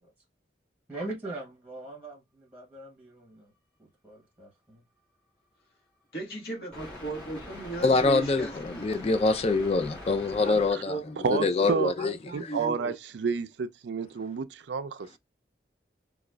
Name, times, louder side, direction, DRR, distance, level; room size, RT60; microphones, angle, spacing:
voice 1, 0.9-3.5 3.8-4.8, right 2 dB, 10° right, 0.9 m, -41 dB
voice 2, 6.1-9.3 10.4-12.9, right 2 dB, 55° left, 1.2 m, -38 dB
sound 1, 6.7-11.9, left 1 dB, 5° left, 2.0 m, -44 dB
voice 3, 7.8-10.9 11.3-12.2, left 3 dB, 35° left, 0.3 m, -25 dB
voice 4, 11.2-11.9 12.3-15.2, right 5 dB, 75° right, 0.4 m, -30 dB
4.8 x 2.3 x 2.2 m
head